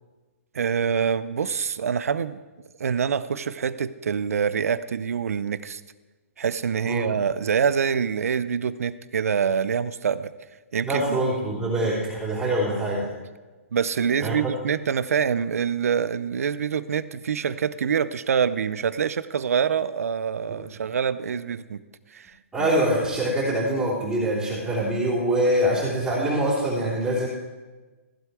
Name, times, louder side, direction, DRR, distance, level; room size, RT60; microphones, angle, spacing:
voice 1, 0.5-2.4 2.8-5.8 6.4-10.3 10.7-11.2 13.7-21.8 22.1-22.7, right 7 dB, 75° right, 16 dB, 0.6 m, -25 dB
voice 2, 10.8-13.1 14.2-14.4 22.5-27.3, right 1 dB, 10° right, -8 dB, 3.3 m, -24 dB
15.0 x 7.6 x 4.8 m, 1.2 s
hypercardioid pair, 140°, 8 cm